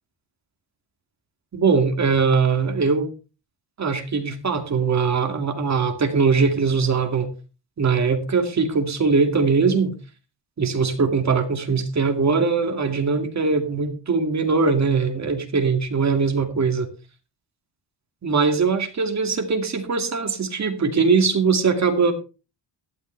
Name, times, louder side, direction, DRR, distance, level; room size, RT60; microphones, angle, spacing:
voice 1, 1.5-3.1 3.8-7.3 7.8-9.9 10.6-16.9 18.2-22.1, right 4 dB, 35° right, 5 dB, 2.4 m, -21 dB
15.5 x 12.0 x 3.4 m, 0.33 s
wide cardioid pair, 175°, 45 cm